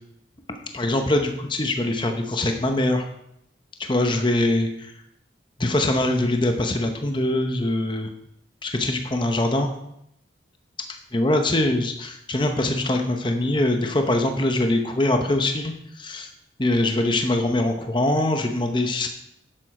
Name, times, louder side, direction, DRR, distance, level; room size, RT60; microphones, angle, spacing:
voice 1, 0.5-3.1 3.8-4.9 5.6-8.1 8.6-9.7 11.1-16.3 16.6-19.1, left 1 dB, 25° left, 5 dB, 0.9 m, -23 dB
10.5 x 7.8 x 4.9 m, 0.78 s
head